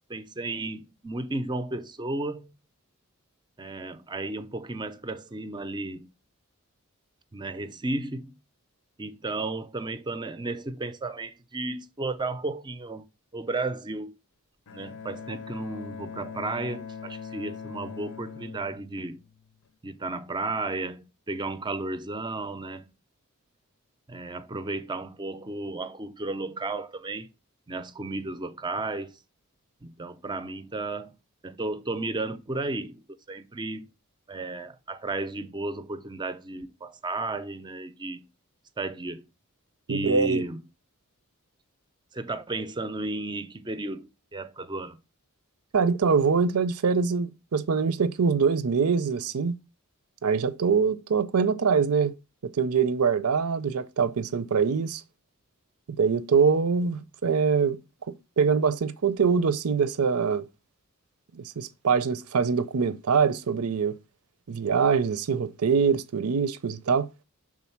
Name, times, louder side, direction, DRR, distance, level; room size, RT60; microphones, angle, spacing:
voice 1, 0.0-2.5 3.6-6.1 7.3-8.4 9.0-13.0 13.3-14.2 14.7-19.2 19.8-22.9 24.1-27.3 27.7-29.2 29.8-33.9 34.3-38.2 38.8-39.3 39.9-40.6 42.1-45.0, right 2 dB, 20° right, 0.5 m, -33 dB
Bowed string instrument, 14.7-19.7, left 6 dB, 60° left, 0.6 m, -41 dB
voice 2, 39.9-40.4 45.7-49.5 50.2-52.1 52.4-55.0 56.0-57.8 58.1-60.5 61.3-64.0 64.5-67.1, right 5 dB, 80° right, 0.6 m, -24 dB
6.2 x 3.8 x 5.8 m
head